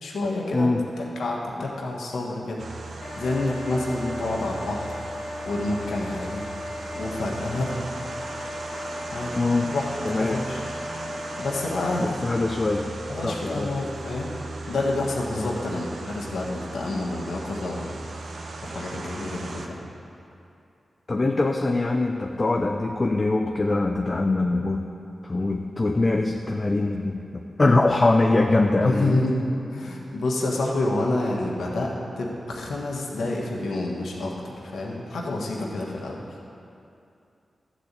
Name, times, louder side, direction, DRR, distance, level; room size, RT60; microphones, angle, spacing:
voice 1, 0.0-0.7 1.0-4.9 5.4-6.5 6.9-7.8 9.1-9.3 9.6-9.9 10.2-10.6 11.4-12.2 13.1-14.3 14.7-19.8 28.8-29.4 29.7-36.4, left 2 dB, 85° left, -3 dB, 1.4 m, -28 dB
voice 2, 0.5-0.8 9.4-9.7 10.0-10.4 12.0-12.9 13.2-13.7 15.4-15.6 21.1-24.8 25.2-29.1, left 2 dB, 40° left, 2 dB, 0.6 m, -23 dB
sound 1, 2.6-19.7, right 3 dB, 70° right, 0.8 m, -38 dB
sound 2, 3.0-11.9, left 1 dB, 65° left, 1.1 m, -36 dB
12.5 x 4.2 x 8.2 m, 2.7 s
cardioid pair, 50°, 0 cm